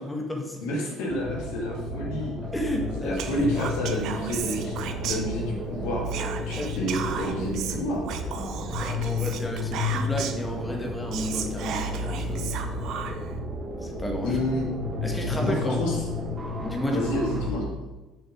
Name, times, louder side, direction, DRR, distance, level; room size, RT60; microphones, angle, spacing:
voice 1, 0.0-0.6 2.5-3.2 6.5-6.9 7.2-7.5 8.8-12.5 13.8-14.4 15.0-15.8 16.6-17.1, left 1 dB, 15° left, 1 dB, 1.7 m, -32 dB
voice 2, 0.6-2.4 3.0-4.8 5.0-6.1 6.5-8.0 9.0-9.1 14.2-14.7 15.4-16.0 16.9-17.7, left 1 dB, 70° left, -3 dB, 2.3 m, -29 dB
sound 1, 1.1-17.5, left 2 dB, 30° right, 1.6 m, -32 dB
Whispering, 3.2-5.7 6.0-10.5 10.8-10.9 11.1-13.4, right 8 dB, 60° right, 0.7 m, -35 dB
6.4 x 6.2 x 5.0 m, 1.1 s
hypercardioid pair, 60°, 0 cm